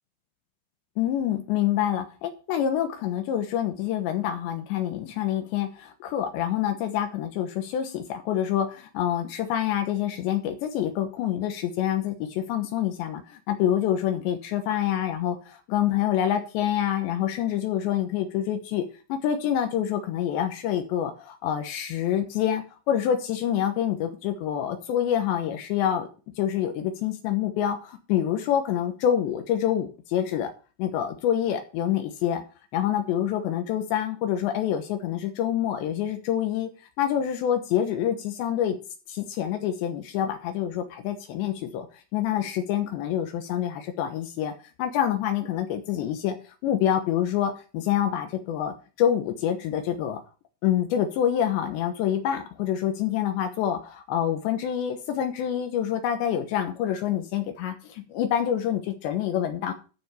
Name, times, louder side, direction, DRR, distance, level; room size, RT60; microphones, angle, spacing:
voice 1, 1.0-18.8 19.1-26.1 26.4-30.5 30.8-32.4 32.7-36.7 37.0-38.8 39.1-41.9 42.1-44.5 44.8-46.4 46.6-50.2 50.6-59.7, left 10 dB, 75° left, 7 dB, 3.2 m, -26 dB
13.0 x 5.2 x 6.8 m, 0.35 s
omnidirectional pair, 5.4 m